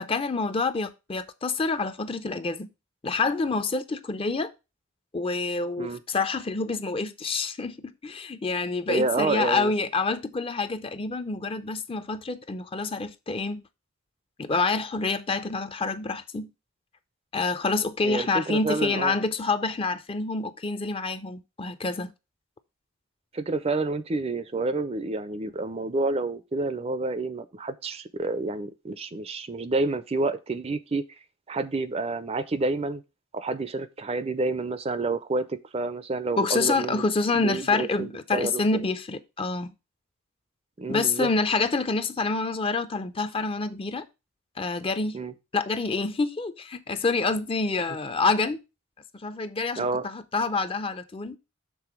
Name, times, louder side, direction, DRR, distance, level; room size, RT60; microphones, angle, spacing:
voice 1, 0.0-2.7 3.0-4.5 5.1-13.6 14.4-16.5 17.3-22.1 36.4-39.7 40.9-44.1 44.6-45.2 45.5-48.6 49.1-51.4, left 3 dB, 25° left, 0.4 m, -27 dB
voice 2, 8.9-9.7 18.0-19.1 23.3-31.0 31.5-33.0 33.3-37.0 37.3-38.6 40.8-41.3 45.1-45.3 49.8-50.1, right 3 dB, 30° right, 0.4 m, -29 dB
6.9 x 3.8 x 5.9 m
head